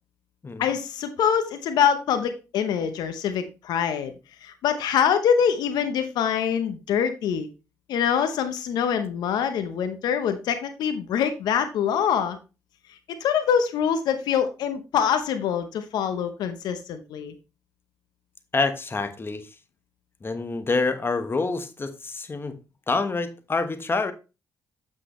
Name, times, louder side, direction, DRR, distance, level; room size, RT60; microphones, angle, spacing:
voice 1, 0.6-4.1 4.4-7.5 7.9-12.4 13.1-17.3, left 8 dB, 80° left, 9 dB, 0.8 m, -24 dB
voice 2, 18.5-19.5 20.2-22.5 22.9-24.1, left 3 dB, 35° left, 9 dB, 1.1 m, -27 dB
7.5 x 6.3 x 3.1 m, 0.30 s
supercardioid pair, 55°, 7 cm